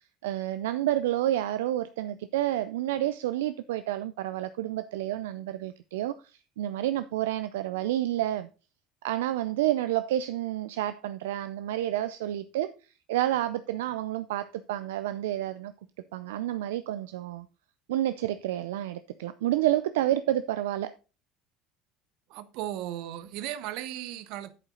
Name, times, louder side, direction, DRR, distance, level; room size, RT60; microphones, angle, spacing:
voice 1, 0.2-6.2 6.6-8.5 9.0-12.7 13.1-15.7 16.1-17.5 17.9-20.9, right 13 dB, 85° right, 0.4 m, -29 dB
voice 2, 22.3-24.5, right 12 dB, 70° right, 0.8 m, -36 dB
8.9 x 7.5 x 3.8 m
supercardioid pair, 85°, 0 cm